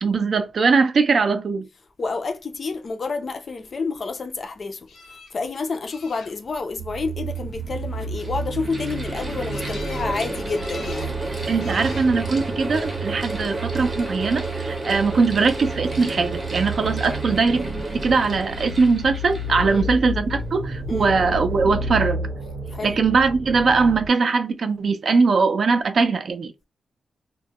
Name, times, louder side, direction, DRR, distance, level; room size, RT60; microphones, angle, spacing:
voice 1, 0.0-1.7 11.5-17.7 17.9-22.3 22.8-26.7, right 4 dB, 50° right, 0.3 m, -21 dB
voice 2, 2.0-4.9 5.3-11.2 19.6-19.8 20.9-21.1 22.7-23.0, left 4 dB, 40° left, 0.3 m, -29 dB
sound 1, 4.9-5.3 5.9-6.6 9.5-10.1 10.5-11.1 11.6-12.1 13.0-13.5 19.7-19.8 20.2-20.3, left 4 dB, 80° left, 0.6 m, -43 dB
sound 2, 6.8-24.1, right 2 dB, 85° right, 0.7 m, -31 dB
Mechanical fan, 6.9-7.0 7.8-20.5, right 1 dB, 20° right, 0.7 m, -32 dB
2.2 x 2.0 x 2.7 m
wide cardioid pair, 165°, 0 cm